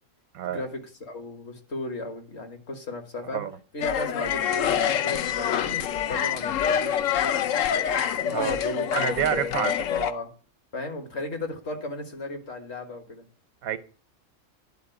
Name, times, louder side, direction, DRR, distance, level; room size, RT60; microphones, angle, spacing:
voice 1, 0.4-3.4 3.7-7.7 8.2-10.3 10.7-13.3, left 2 dB, 50° left, 1.8 m, -35 dB
sound 1, 3.8-10.1, left 9 dB, 70° left, 1.0 m, -26 dB
voice 2, 8.9-9.7 13.6-13.8, right 9 dB, 90° right, 1.3 m, -27 dB
10.5 x 4.2 x 7.8 m
omnidirectional pair, 1.4 m